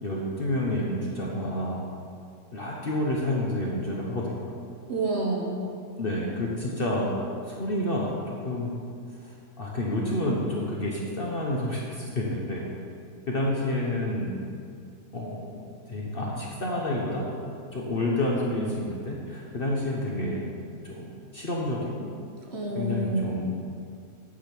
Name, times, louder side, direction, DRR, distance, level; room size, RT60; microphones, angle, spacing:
voice 1, 0.0-1.8 2.5-4.3 6.0-7.2 7.5-8.7 9.2-12.6 13.3-14.3 15.1-15.6 15.9-17.2 17.7-20.4 20.8-22.1 22.7-23.5, left 1 dB, 40° left, -3 dB, 1.0 m, -29 dB
voice 2, 4.9-5.6 22.4-23.3, right 2 dB, 45° right, -2 dB, 1.2 m, -28 dB
8.7 x 5.2 x 6.0 m, 2.3 s
omnidirectional pair, 1.7 m